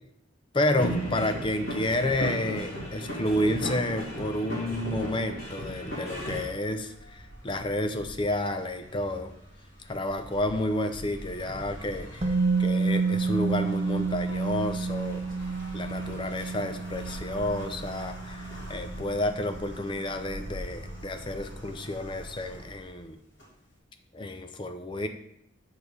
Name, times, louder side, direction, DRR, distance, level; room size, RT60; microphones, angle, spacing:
voice 1, 0.5-9.3 9.9-12.3 12.6-15.2 15.7-18.4 18.7-23.2 24.1-25.1, left 1 dB, 25° left, 7 dB, 0.5 m, -30 dB
sound 1, 0.8-6.4, equal, 85° left, 2.6 m, -34 dB
sound 2, 5.6-23.7, equal, 70° left, 2.9 m, -44 dB
Musical instrument, 12.2-20.1 20.4-20.6, right 4 dB, 35° right, 0.7 m, -30 dB
6.7 x 4.8 x 5.4 m, 0.76 s
head